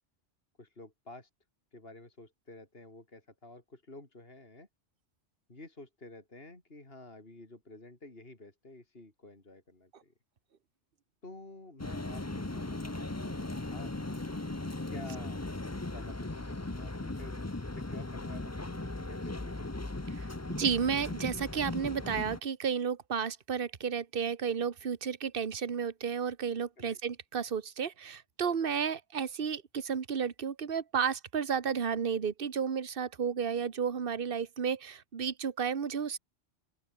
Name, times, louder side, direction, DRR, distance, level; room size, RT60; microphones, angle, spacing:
voice 1, 0.6-1.3 1.7-4.7 5.5-10.1 11.2-13.9 14.9-15.4 15.8-17.4 17.7-19.8 26.8-27.0, left 2 dB, 50° left, 4.4 m, -51 dB
sound 1, 11.8-22.4, left 2 dB, 15° left, 1.0 m, -38 dB
voice 2, 20.5-36.2, right 7 dB, 50° right, 1.4 m, -32 dB
open air
omnidirectional pair, 1.2 m